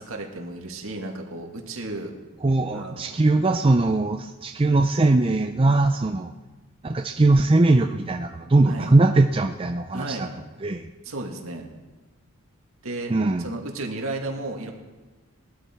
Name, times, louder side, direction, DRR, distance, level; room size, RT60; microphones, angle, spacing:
voice 1, 0.0-2.1 2.7-3.2 8.7-8.9 9.9-10.3 11.0-11.7 12.8-13.1 13.4-14.7, right 2 dB, 70° right, 2 dB, 2.1 m, -33 dB
voice 2, 2.4-6.3 6.8-10.3 10.6-10.9 13.1-13.5, right 2 dB, 25° right, 5 dB, 0.4 m, -20 dB
19.0 x 12.5 x 4.5 m, 1.2 s
head